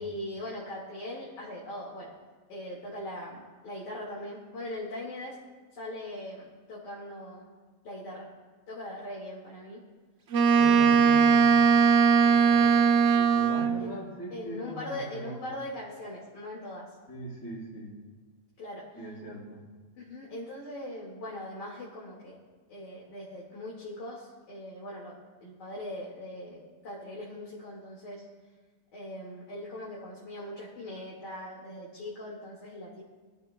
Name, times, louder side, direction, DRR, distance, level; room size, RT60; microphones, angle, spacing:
voice 1, 0.0-2.1 2.5-5.4 5.7-7.4 7.8-8.3 8.7-9.8 10.6-11.1 12.2-12.9 13.8-14.0 14.3-16.9 18.6-18.9 19.9-22.4 22.7-28.2 28.9-33.0, left 1 dB, 85° left, -4 dB, 2.6 m, -40 dB
Wind instrument woodwind instrument, 10.3-13.9, right 6 dB, 60° right, 0.8 m, -20 dB
voice 2, 10.6-15.4 17.1-17.9 19.0-19.6, equal, 60° left, -8 dB, 3.3 m, -41 dB
21.5 x 12.5 x 2.2 m, 1.3 s
omnidirectional pair, 1.8 m